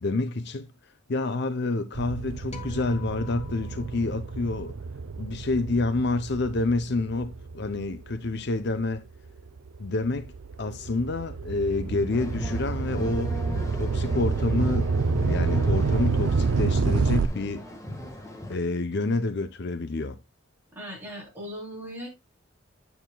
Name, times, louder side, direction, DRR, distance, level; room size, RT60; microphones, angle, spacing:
voice 1, 0.0-0.7 1.1-4.7 5.2-9.1 9.8-10.3 10.6-13.4 13.7-14.9 15.2-17.6 18.5-20.2, left 2 dB, 50° left, 0.6 m, -28 dB
sound 1, 1.9-8.7 9.3-17.2, right 4 dB, 75° right, 0.5 m, -28 dB
sound 2, 2.5-5.0, left 6 dB, 30° left, 1.2 m, -48 dB
sound 3, 12.1-18.6, left 1 dB, 15° left, 1.5 m, -37 dB
voice 2, 20.7-22.1, equal, 10° right, 3.6 m, -38 dB
9.2 x 7.9 x 2.2 m
head